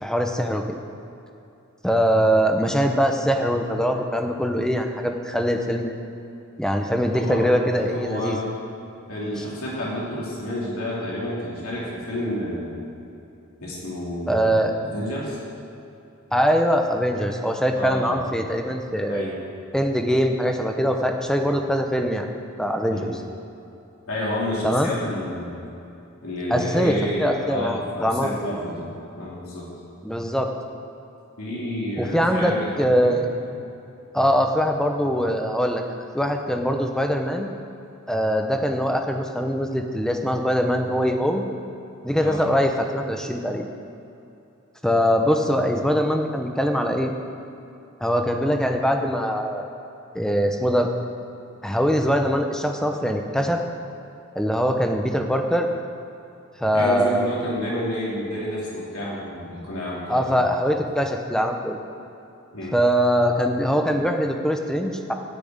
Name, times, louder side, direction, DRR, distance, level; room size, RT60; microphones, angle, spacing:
voice 1, 0.0-0.6 1.8-6.0 6.6-8.4 14.3-14.7 16.3-19.2 19.7-22.3 22.6-23.1 24.6-24.9 26.5-28.3 30.0-30.5 32.0-32.5 32.8-33.3 34.1-35.8 36.1-37.5 38.1-41.5 42.0-43.6 44.8-47.1 48.0-49.6 50.1-50.9 51.6-53.6 54.4-55.7 56.6-57.3 60.1-61.8 62.7-65.1, equal, 5° left, 4 dB, 0.8 m, -22 dB
voice 2, 7.1-7.5 7.7-8.5 9.1-12.9 13.6-15.4 17.7-18.2 19.1-19.4 22.9-23.2 24.1-25.6 26.2-29.7 31.4-33.5 42.2-42.4 56.7-60.4 62.5-62.7, left 1 dB, 85° left, -6 dB, 2.9 m, -30 dB
12.0 x 6.1 x 8.7 m, 2.8 s
head